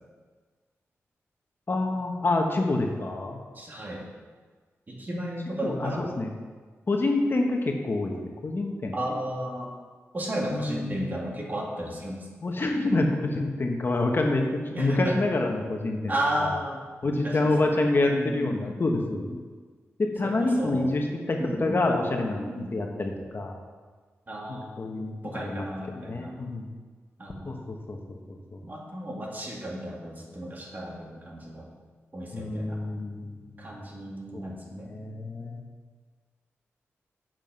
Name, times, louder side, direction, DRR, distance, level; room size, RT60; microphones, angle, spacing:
voice 1, 1.7-3.4 5.6-6.3 6.9-8.1 8.4-9.0 10.5-11.1 12.4-16.1 16.4-16.6 17.0-19.4 20.0-23.5 24.5-25.7 25.9-26.7 27.5-28.6 32.3-33.9 34.3-34.5 34.9-35.6, left 2 dB, 45° left, 2 dB, 1.1 m, -27 dB
voice 2, 3.6-4.1 4.9-6.0 8.9-9.7 10.1-12.3 14.7-15.2 16.1-16.8 17.2-17.6 18.1-18.7 20.2-21.0 21.4-21.8 22.5-22.7 24.3-24.7 25.2-26.3 27.2-27.7 28.6-31.7 32.1-32.8 33.6-34.9, right 1 dB, 35° right, -1 dB, 1.9 m, -33 dB
7.5 x 7.2 x 5.4 m, 1.5 s
wide cardioid pair, 85°, 5 cm